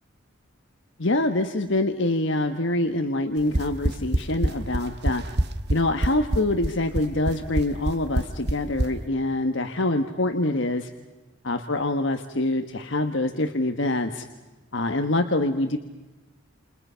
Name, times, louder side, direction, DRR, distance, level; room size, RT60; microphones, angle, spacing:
voice 1, 1.0-5.2 5.7-10.9 11.4-14.3 14.7-15.8, left 2 dB, 60° left, 6 dB, 1.4 m, -25 dB
sound 1, 3.4-8.9, right 1 dB, 50° right, 1.4 m, -24 dB
29.0 x 28.5 x 5.8 m, 1.2 s
head